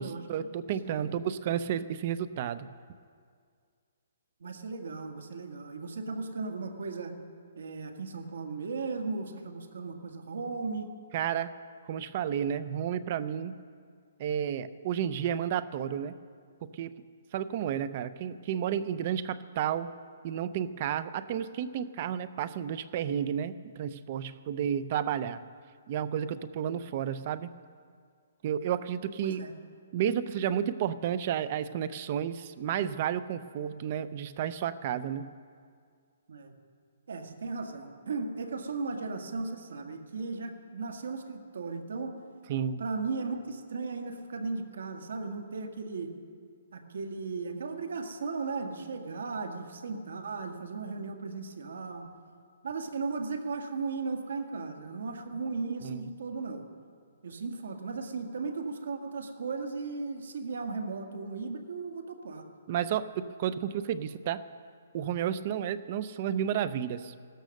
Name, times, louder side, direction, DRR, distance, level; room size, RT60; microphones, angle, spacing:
voice 1, 0.0-2.7 11.1-11.5 11.9-13.6 14.2-16.2 16.6-16.9 17.3-19.9 20.2-25.4 25.9-27.5 28.4-29.4 29.9-35.3 42.5-42.8 55.8-56.1 62.7-64.4 64.9-67.1, right 9 dB, 35° right, 15 dB, 0.6 m, -32 dB
voice 2, 0.8-1.2 4.4-7.2 7.6-10.9 29.2-29.5 36.3-36.5 37.1-42.2 42.8-46.1 46.7-52.1 52.6-56.7 57.2-62.5, right 4 dB, 75° right, 5 dB, 1.7 m, -36 dB
15.5 x 13.0 x 6.5 m, 2.1 s
hypercardioid pair, 165°, 0 cm